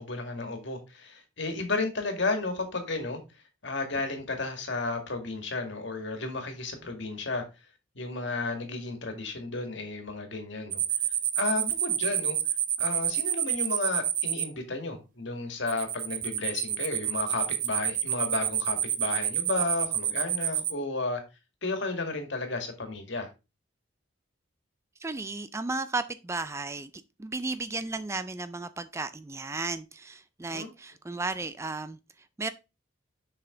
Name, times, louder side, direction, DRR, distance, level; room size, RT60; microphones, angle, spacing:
voice 1, 0.0-3.2 3.6-7.4 8.0-10.8 11.4-12.4 12.8-21.2 21.6-23.3 30.5-30.7, left 3 dB, 60° left, 2.0 m, -33 dB
sound 1, 10.7-14.4 15.7-20.7, right 11 dB, 45° right, 0.8 m, -28 dB
voice 2, 25.0-26.9 27.2-32.0 32.4-32.5, right 3 dB, 15° right, 0.3 m, -34 dB
6.7 x 5.8 x 3.8 m
head